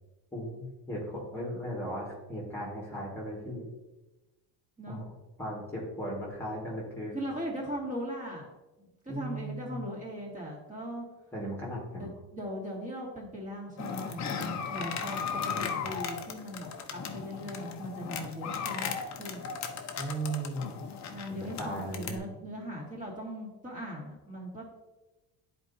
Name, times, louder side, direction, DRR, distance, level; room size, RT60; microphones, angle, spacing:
voice 1, 0.3-3.7 4.9-5.1 5.4-7.2 9.1-9.8 11.3-12.1 15.5-15.7 20.0-20.7 21.3-22.3, right 1 dB, 5° left, -5 dB, 1.8 m, -37 dB
voice 2, 7.1-8.5 8.8-11.0 12.0-19.5 21.1-24.7, equal, 15° right, -4 dB, 2.2 m, -39 dB
sound 1, 13.8-22.2, left 6 dB, 40° left, 0.8 m, -37 dB
10.5 x 4.4 x 2.7 m, 1.1 s
cardioid pair, 125°, 45 cm